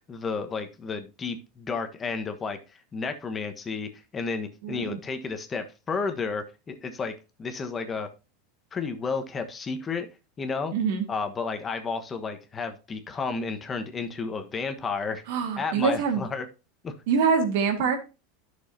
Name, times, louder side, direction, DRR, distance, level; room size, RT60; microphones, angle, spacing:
voice 1, 0.1-2.6 2.9-7.1 7.4-8.1 8.7-10.1 10.4-10.7 11.1-15.2 15.6-16.4 16.8-16.9, left 4 dB, 25° left, 7 dB, 1.3 m, -32 dB
voice 2, 4.6-5.0 10.7-11.1 15.3-16.2 17.1-18.0, right 6 dB, 70° right, 6 dB, 1.9 m, -24 dB
11.5 x 6.4 x 2.8 m, 0.29 s
hypercardioid pair, 95°, 0 cm